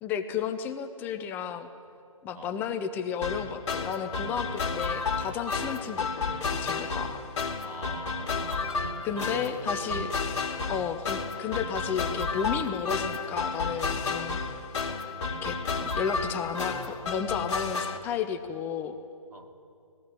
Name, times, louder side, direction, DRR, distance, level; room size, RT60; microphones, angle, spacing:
voice 1, 0.0-1.7 2.2-7.2 9.0-10.1 10.7-14.4 15.4-15.6 15.9-19.0, left 7 dB, 10° left, 8 dB, 0.5 m, -33 dB
sound 1, 3.2-18.0, left 4 dB, 55° left, 2.5 m, -32 dB
voice 2, 7.6-8.6 9.1-10.3 10.6-10.8 19.3-19.5, right 3 dB, 85° right, 5 dB, 2.6 m, -44 dB
19.0 x 15.5 x 9.8 m, 2.5 s
figure-of-eight pair, 145°, 18 cm